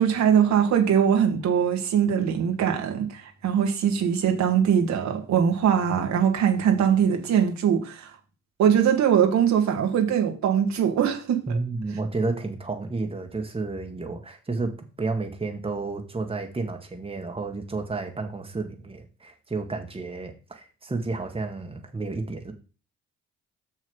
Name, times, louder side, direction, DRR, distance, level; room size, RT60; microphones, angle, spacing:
voice 1, 0.0-8.1 8.6-11.4, right 8 dB, 70° right, 2.0 m, -22 dB
voice 2, 11.5-14.7 15.0-22.5, right 3 dB, 20° right, 1.8 m, -31 dB
6.4 x 6.4 x 5.5 m
supercardioid pair, 75°, 29 cm